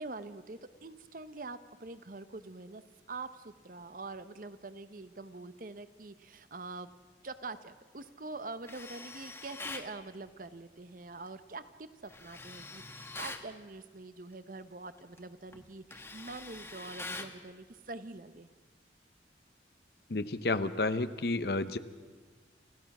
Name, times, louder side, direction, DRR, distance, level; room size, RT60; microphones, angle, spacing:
voice 1, 0.0-2.8 3.1-6.9 7.2-18.5, right 3 dB, 50° right, 12 dB, 0.9 m, -45 dB
Tools, 8.6-9.9 12.1-13.5 15.0-15.2 15.5-17.4, left 3 dB, 15° left, 1.1 m, -44 dB
voice 2, 20.1-21.8, left 2 dB, 60° left, 12 dB, 0.8 m, -31 dB
29.0 x 15.5 x 6.1 m, 1.5 s
head